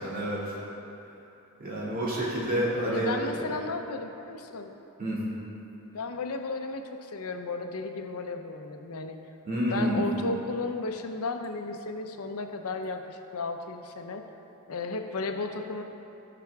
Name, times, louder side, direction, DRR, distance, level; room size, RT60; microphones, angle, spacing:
voice 1, 0.0-0.6 1.6-3.5 5.0-5.2 9.4-10.0, equal, 40° right, -7 dB, 2.3 m, -29 dB
voice 2, 2.9-4.8 5.9-9.2 9.7-14.2 14.7-15.8, left 3 dB, 85° left, 6 dB, 0.7 m, -34 dB
14.5 x 5.9 x 3.5 m, 2.9 s
head